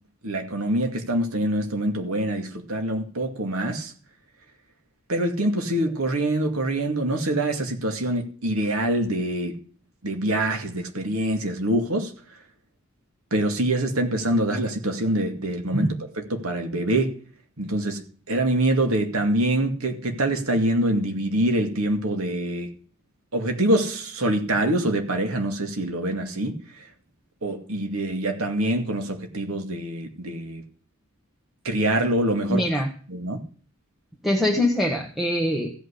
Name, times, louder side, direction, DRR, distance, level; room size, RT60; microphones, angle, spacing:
voice 1, 0.2-3.9 5.1-9.6 10.0-12.1 13.3-17.2 17.6-22.8 23.3-26.9 27.4-30.6 31.6-32.7 33.1-33.4, right 1 dB, 75° right, 2.3 m, -25 dB
voice 2, 32.5-32.9 34.2-35.7, left 1 dB, ahead, 1.2 m, -23 dB
15.5 x 5.9 x 8.3 m
head